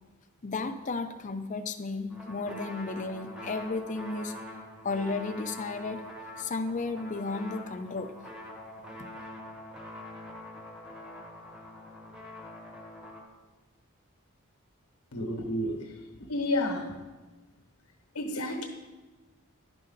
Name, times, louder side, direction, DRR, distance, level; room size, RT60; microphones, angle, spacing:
voice 1, 0.4-4.3 4.8-6.0 6.4-8.1, left 3 dB, 35° left, 8 dB, 0.5 m, -33 dB
sound 1, 2.1-13.2, left 1 dB, 5° right, 1.0 m, -44 dB
voice 2, 15.1-16.0 16.3-17.0 18.1-18.7, left 1 dB, 90° left, 3 dB, 0.9 m, -30 dB
10.5 x 5.4 x 3.9 m, 1.2 s
head